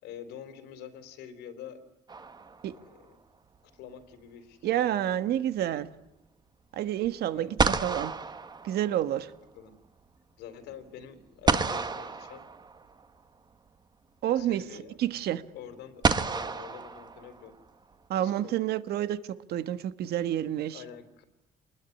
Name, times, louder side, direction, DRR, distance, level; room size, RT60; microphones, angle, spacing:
voice 1, 0.0-1.8 2.7-3.2 3.6-5.0 7.3-7.6 9.5-9.7 10.4-12.4 14.3-15.0 15.5-17.5 18.1-18.6 20.7-21.2, left 8 dB, 85° left, 3.9 m, -46 dB
sound 1, 2.1-3.0 7.0-7.1 7.6-9.3 11.5-13.1 14.4-14.5 16.0-17.7, right 4 dB, 25° right, 1.7 m, -30 dB
voice 2, 4.6-5.9 6.8-7.5 7.8-8.1 8.6-9.3 14.2-14.6 15.0-15.4 18.1-19.2 19.5-20.8, right 12 dB, 70° right, 1.6 m, -28 dB
27.5 x 20.5 x 9.9 m
cardioid pair, 110°, 17 cm